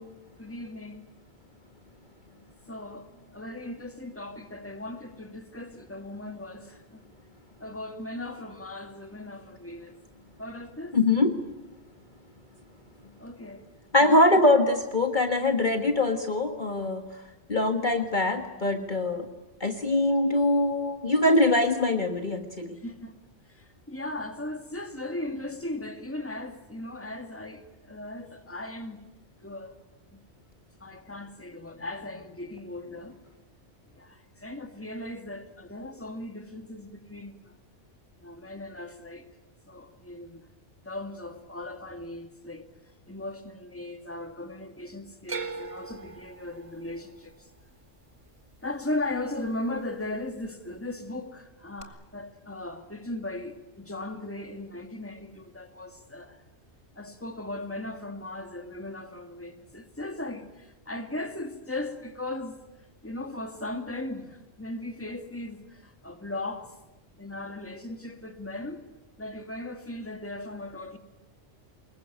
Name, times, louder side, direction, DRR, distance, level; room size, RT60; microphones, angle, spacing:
voice 1, 0.4-1.1 2.7-7.0 7.6-10.0 10.4-11.0 13.2-13.6 14.0-14.2 22.8-23.1 23.5-29.0 29.4-29.7 30.8-33.2 33.9-37.6 38.2-39.3 39.7-40.4 40.8-42.7 43.1-47.5 48.6-56.4 57.0-62.6 63.0-66.7 67.2-68.8 69.2-71.0, left 2 dB, 10° left, 2.1 m, -37 dB
voice 2, 10.9-11.3 13.9-17.1 17.5-19.3 19.6-22.8, left 2 dB, 40° left, 1.8 m, -23 dB
sound 1, 45.3-49.5 49.8-50.5 51.8-51.9, right 4 dB, 25° right, 1.8 m, -41 dB
25.5 x 22.0 x 9.3 m
omnidirectional pair, 1.2 m